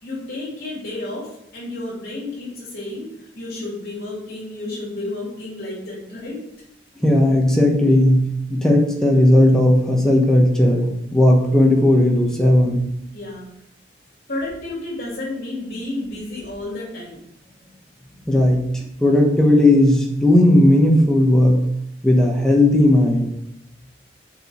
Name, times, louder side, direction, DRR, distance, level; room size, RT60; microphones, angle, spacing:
voice 1, 0.0-6.5 13.1-13.5 14.3-17.2, left 2 dB, 55° left, -5 dB, 2.7 m, -31 dB
voice 2, 7.0-12.9 18.3-18.7 19.0-21.6 22.0-23.3, left 1 dB, 5° left, 0 dB, 1.1 m, -15 dB
6.3 x 4.6 x 6.4 m, 0.77 s
head